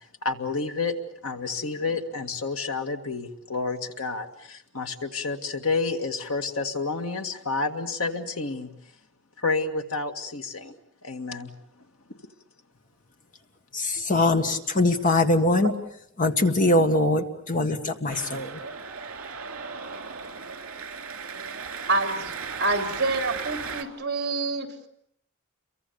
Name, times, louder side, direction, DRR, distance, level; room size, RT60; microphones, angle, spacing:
voice 1, 0.2-1.0 1.2-8.7 9.4-10.7 11.0-11.5, left 3 dB, 75° left, 5 dB, 2.1 m, -29 dB
voice 2, 13.7-15.7 16.2-18.6, left 2 dB, 40° left, 6 dB, 1.8 m, -22 dB
Cheering, 18.1-23.8, right 5 dB, 70° right, 2.9 m, -36 dB
voice 3, 21.9-22.3 22.6-24.9, right 3 dB, 50° right, 5 dB, 3.5 m, -27 dB
29.5 x 23.5 x 7.1 m, 0.70 s
head